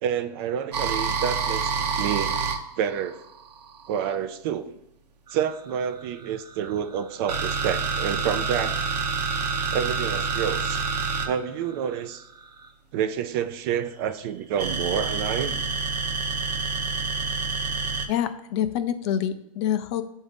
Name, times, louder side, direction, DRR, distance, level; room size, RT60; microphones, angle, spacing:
voice 1, 0.0-2.4 2.8-3.2 3.9-4.7 5.3-8.8 9.7-10.8 11.2-12.2 12.9-15.6, right 8 dB, 40° right, 10 dB, 0.4 m, -28 dB
sound 1, 0.7-4.1 5.3-12.7 14.6-18.1, right 5 dB, 85° right, 0.9 m, -27 dB
voice 2, 18.1-20.0, left 10 dB, 45° left, 10 dB, 0.5 m, -26 dB
7.2 x 2.7 x 5.1 m, 0.81 s
hypercardioid pair, 140°, 20 cm